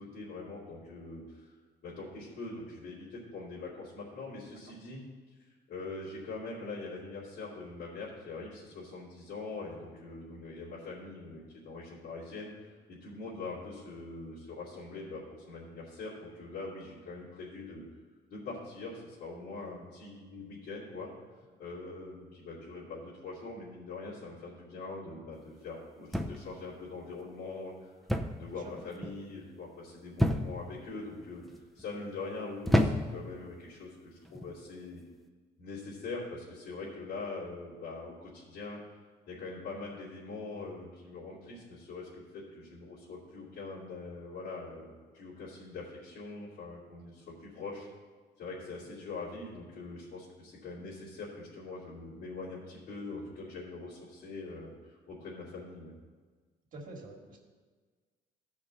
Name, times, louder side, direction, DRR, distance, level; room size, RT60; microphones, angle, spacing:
voice 1, 0.0-1.5 1.8-5.0 5.5-17.8 18.3-21.1 21.6-28.1 28.4-35.0 35.6-38.8 39.3-47.9 48.4-55.9, left 3 dB, 80° left, -10 dB, 2.7 m, -43 dB
sound 1, 26.1-26.6 28.1-28.5 28.8-29.2 30.2-30.7 31.5-31.8 32.7-33.3 34.2-34.5, equal, ahead, 0.6 m, -29 dB
voice 2, 56.7-57.4, right 2 dB, 50° right, 1 dB, 1.8 m, -46 dB
14.5 x 5.2 x 3.9 m, 1.5 s
cardioid pair, 110°, 17 cm